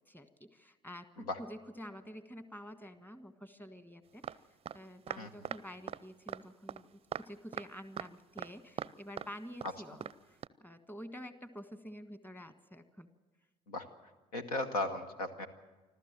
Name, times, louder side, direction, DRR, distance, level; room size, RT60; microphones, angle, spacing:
voice 1, 0.1-4.4 4.7-13.1, equal, 10° left, 10 dB, 1.6 m, -49 dB
sound 1, 4.2-4.4 4.7-4.8 5.1-5.6 5.9-6.0 6.3-6.4 6.7-6.8 7.1-7.3 7.5-7.7 8.0-8.1 8.4-8.9 9.2-9.3 9.6-9.7 10.0-10.1 10.4-10.5, right 8 dB, 30° right, 0.5 m, -40 dB
voice 2, 14.3-15.5, left 2 dB, 80° left, 8 dB, 1.3 m, -36 dB
25.5 x 14.5 x 7.6 m, 1.2 s
figure-of-eight pair, 50°, 19 cm